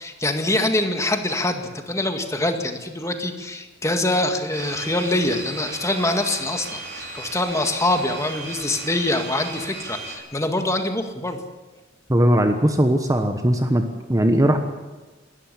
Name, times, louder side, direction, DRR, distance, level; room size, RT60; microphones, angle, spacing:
voice 1, 0.0-11.4, left 1 dB, 15° left, 5 dB, 1.9 m, -24 dB
sound 1, 4.5-10.2, right 3 dB, 60° right, 5.4 m, -36 dB
voice 2, 12.1-13.8 14.1-14.6, right 1 dB, 20° right, 6 dB, 1.2 m, -18 dB
21.0 x 13.0 x 9.9 m, 1.2 s
head